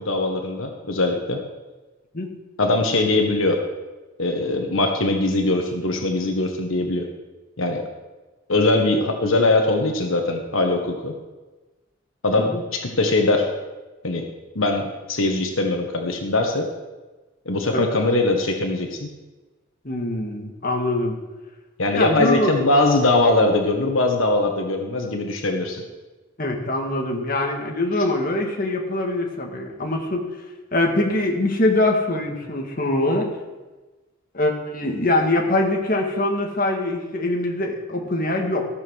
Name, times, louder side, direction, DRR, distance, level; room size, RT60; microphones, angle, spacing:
voice 1, 0.0-1.4 2.6-3.6 4.2-7.1 7.6-7.8 8.5-11.1 12.2-13.5 14.0-14.2 14.5-16.7 17.4-19.1 21.8-25.8, left 2 dB, 80° left, 3 dB, 1.4 m, -21 dB
voice 2, 19.8-21.2 21.9-22.5 26.4-30.2 30.7-33.3 34.3-38.7, left 1 dB, 40° left, 1 dB, 1.9 m, -23 dB
15.0 x 7.2 x 6.3 m, 1.2 s
head